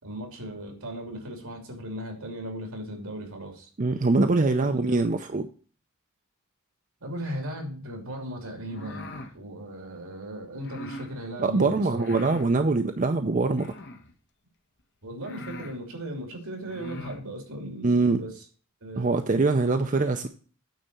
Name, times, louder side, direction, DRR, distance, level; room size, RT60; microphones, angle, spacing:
voice 1, 0.0-3.7 4.8-5.1 7.0-12.0 15.0-18.4 18.8-19.1, equal, 75° right, 2 dB, 2.8 m, -37 dB
voice 2, 3.8-5.4 11.4-13.7 17.8-18.2 19.0-20.3, right 3 dB, 35° right, 7 dB, 0.5 m, -23 dB
sound 1, 8.6-9.3 10.6-11.1 11.9-12.5 13.5-14.1 14.8-14.9 15.2-15.8 16.6-17.2, left 1 dB, 50° left, 1.1 m, -41 dB
9.2 x 4.1 x 6.7 m, 0.40 s
head